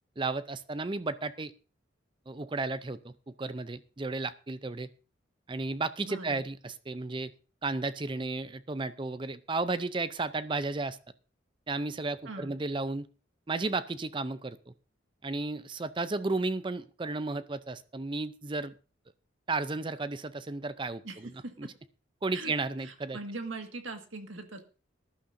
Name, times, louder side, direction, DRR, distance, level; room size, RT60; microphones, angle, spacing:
voice 1, 0.2-1.5 2.3-4.9 5.5-7.3 7.6-11.0 11.7-13.1 13.5-14.7 15.2-18.7 19.5-21.3 21.6-21.7 22.2-23.2, right 3 dB, 25° right, 14 dB, 0.5 m, -33 dB
voice 2, 6.1-6.4 12.3-12.5 21.0-21.2 21.4-21.7 22.3-22.5 22.8-24.6, right 3 dB, 85° right, 5 dB, 1.8 m, -41 dB
19.5 x 11.5 x 2.6 m, 0.34 s
head